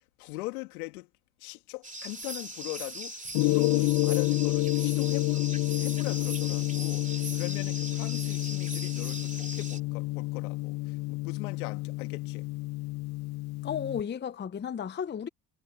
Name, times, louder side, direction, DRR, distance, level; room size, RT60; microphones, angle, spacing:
voice 1, 0.2-1.1 1.4-12.5, left 23 dB, 85° left, 2.6 m, -40 dB
sound 1, 1.8-9.8, right 1 dB, 15° right, 3.6 m, -40 dB
Gong, 3.3-14.0, left 21 dB, 60° left, 0.6 m, -29 dB
voice 2, 13.6-15.3, left 8 dB, 25° left, 0.7 m, -33 dB
hypercardioid pair, 65°, 43 cm